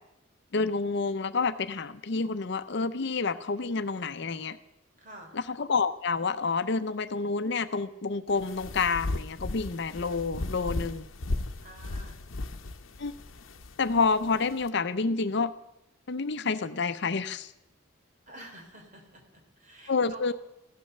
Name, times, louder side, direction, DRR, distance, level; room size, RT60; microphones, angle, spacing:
voice 1, 0.5-4.6 5.3-11.0 13.0-13.1 13.8-15.5 16.1-17.5 19.9-20.3, left 4 dB, 60° left, 11 dB, 0.7 m, -28 dB
voice 2, 5.0-5.4 11.6-12.2 18.3-20.3, right 1 dB, 40° right, 2 dB, 3.3 m, -49 dB
sound 1, 8.3-14.7, left 2 dB, 85° left, 0.8 m, -36 dB
15.5 x 12.0 x 6.6 m, 0.87 s
head